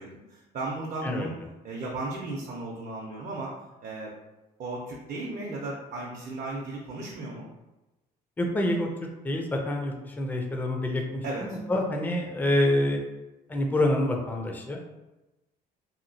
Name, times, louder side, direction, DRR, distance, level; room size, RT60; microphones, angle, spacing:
voice 1, 0.0-1.3 1.6-3.5 3.8-4.1 4.6-7.5 11.2-11.6, right 2 dB, 50° right, -3 dB, 0.6 m, -35 dB
voice 2, 8.4-8.9 9.2-13.0 13.5-14.8, left 1 dB, 10° left, 1 dB, 0.4 m, -27 dB
2.8 x 2.7 x 2.7 m, 1.0 s
cardioid pair, 110°, 17 cm